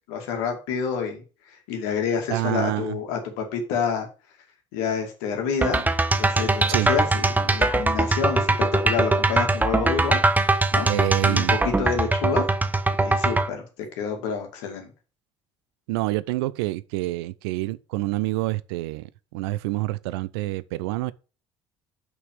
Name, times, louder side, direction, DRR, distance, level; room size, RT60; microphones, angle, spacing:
voice 1, 0.1-1.2 1.5-4.1 4.7-5.9 6.2-10.2 10.7-10.9 11.2-12.5 13.0-14.9, left 6 dB, 65° left, 2.3 m, -28 dB
voice 2, 2.3-3.0 6.7-6.9 10.8-11.6 15.9-21.1, right 18 dB, 65° right, 0.5 m, -27 dB
sound 1, 5.6-13.5, right 2 dB, 10° right, 0.8 m, -22 dB
6.1 x 5.9 x 7.0 m
figure-of-eight pair, 55°, 14 cm